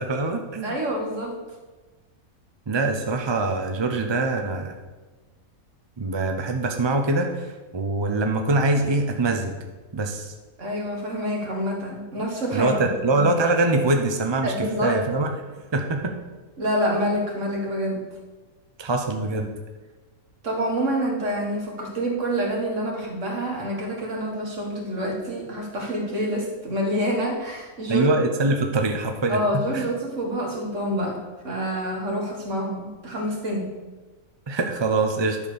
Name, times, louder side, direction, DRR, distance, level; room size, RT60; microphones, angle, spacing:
voice 1, 0.0-0.8 2.7-4.7 6.0-9.5 9.9-10.3 12.5-15.3 15.7-16.1 18.8-19.5 27.9-29.9 34.5-35.4, right 2 dB, 35° right, 4 dB, 0.4 m, -24 dB
voice 2, 0.6-1.4 10.6-13.3 14.4-15.0 16.6-18.1 20.4-28.1 28.4-28.5 29.3-33.7, equal, 60° right, 0 dB, 2.0 m, -27 dB
11.0 x 4.3 x 6.8 m, 1.2 s
omnidirectional pair, 1.5 m